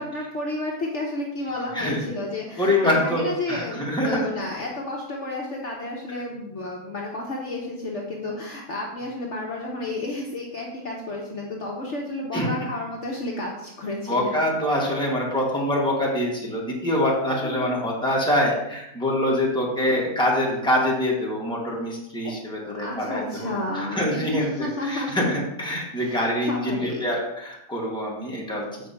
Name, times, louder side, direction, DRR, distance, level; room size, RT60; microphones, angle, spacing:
voice 1, 0.0-14.3 17.4-17.8 22.2-22.3 22.6-25.3 26.0-27.0, left 2 dB, 50° left, -2 dB, 1.4 m, -31 dB
voice 2, 2.6-4.2 12.3-12.7 14.1-28.9, left 1 dB, 5° left, -4 dB, 2.1 m, -25 dB
7.7 x 4.9 x 5.8 m, 0.84 s
omnidirectional pair, 1.6 m